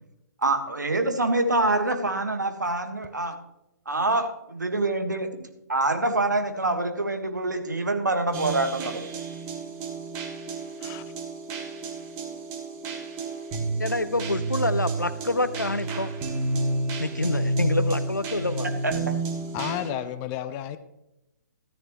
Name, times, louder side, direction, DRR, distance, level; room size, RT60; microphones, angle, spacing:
voice 1, 0.4-3.4 3.8-9.0 18.8-19.1, right 2 dB, 70° right, 1.6 m, -26 dB
sound 1, 8.3-19.9, right 2 dB, 25° right, 1.6 m, -30 dB
voice 2, 13.8-18.7, left 2 dB, 80° left, 0.8 m, -28 dB
voice 3, 19.5-20.8, left 11 dB, 20° left, 0.5 m, -32 dB
14.0 x 10.5 x 3.1 m
figure-of-eight pair, 130°, 10 cm